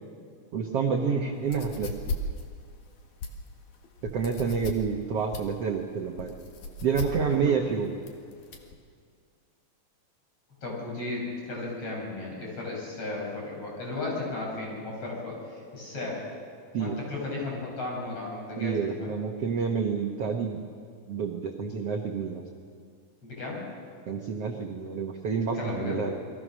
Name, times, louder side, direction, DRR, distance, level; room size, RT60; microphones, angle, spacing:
voice 1, 0.5-1.9 4.1-6.3 6.8-7.9 16.7-17.0 18.6-20.6 21.1-22.4 24.1-26.2, right 6 dB, 60° right, 3 dB, 1.7 m, -28 dB
sound 1, 1.4-8.7, left 3 dB, 60° left, 3.1 m, -37 dB
voice 2, 10.6-16.2 16.8-19.1 23.2-23.7 25.5-26.0, left 2 dB, 40° left, -3 dB, 7.6 m, -35 dB
29.5 x 21.5 x 6.4 m, 2.2 s
omnidirectional pair, 4.3 m